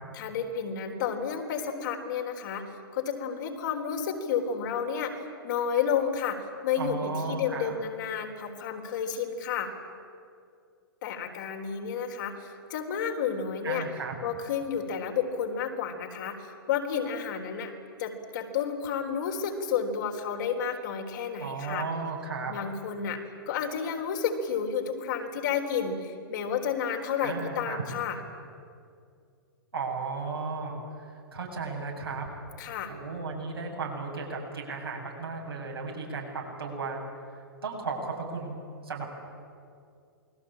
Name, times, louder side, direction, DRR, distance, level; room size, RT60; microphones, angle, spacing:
voice 1, 0.1-9.7 11.0-13.9 14.2-17.7 18.0-21.9 22.5-23.2 23.5-28.2 32.6-32.9, left 7 dB, 55° left, 3 dB, 4.0 m, -31 dB
voice 2, 6.8-7.7 13.6-14.1 21.4-22.5 27.2-27.8 29.7-32.3 32.9-37.0 37.6-39.1, right 4 dB, 80° right, -1 dB, 7.9 m, -35 dB
28.5 x 21.0 x 8.9 m, 2.3 s
figure-of-eight pair, 110°, 12 cm